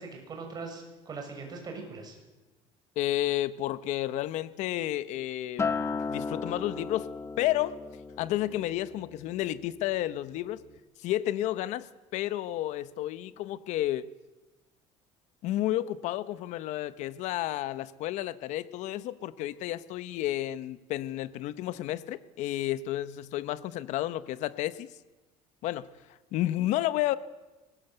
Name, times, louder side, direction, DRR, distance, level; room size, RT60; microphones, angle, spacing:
voice 1, 0.0-2.2, right 4 dB, 30° right, 3 dB, 6.7 m, -41 dB
voice 2, 3.0-7.1 7.4-7.8 8.2-10.6 11.0-11.9 12.1-14.1 15.4-24.9 25.6-25.9 26.3-27.2, left 14 dB, 65° left, 15 dB, 1.1 m, -31 dB
Acoustic guitar, 5.6-10.0 10.4-10.8, left 4 dB, 20° left, 1.2 m, -36 dB
24.0 x 20.0 x 8.1 m, 1.1 s
cardioid pair, 140°, 13 cm